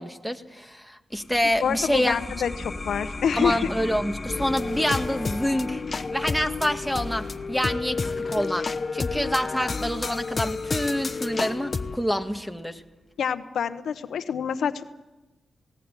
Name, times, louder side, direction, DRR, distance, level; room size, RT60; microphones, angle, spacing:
voice 1, 0.0-2.2 3.3-5.8 6.1-12.8, equal, ahead, 7 dB, 1.8 m, -27 dB
sound 1, 1.1-12.3, left 2 dB, 25° left, 2.4 m, -39 dB
voice 2, 1.6-3.7 13.2-14.9, left 7 dB, 80° left, 11 dB, 1.0 m, -27 dB
sound 2, 4.3-12.0, left 4 dB, 45° left, 1.0 m, -30 dB
18.5 x 18.5 x 9.1 m, 1.1 s
cardioid pair, 60°, 0 cm